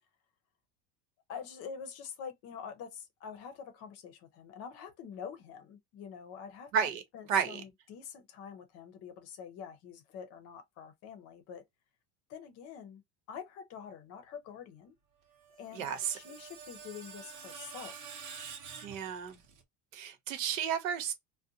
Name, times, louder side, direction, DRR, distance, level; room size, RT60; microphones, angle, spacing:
voice 1, 1.3-6.9 7.1-11.6 12.3-13.0 13.3-15.0 15.6-18.2, left 7 dB, 40° left, 0.6 m, -46 dB
voice 2, 6.7-7.0 7.3-7.6 15.7-16.2 18.8-19.4 19.9-21.1, right 8 dB, 90° right, 1.0 m, -32 dB
Screech, 15.3-19.6, right 6 dB, 55° right, 0.9 m, -48 dB
2.5 x 2.1 x 2.7 m
cardioid pair, 160°, 38 cm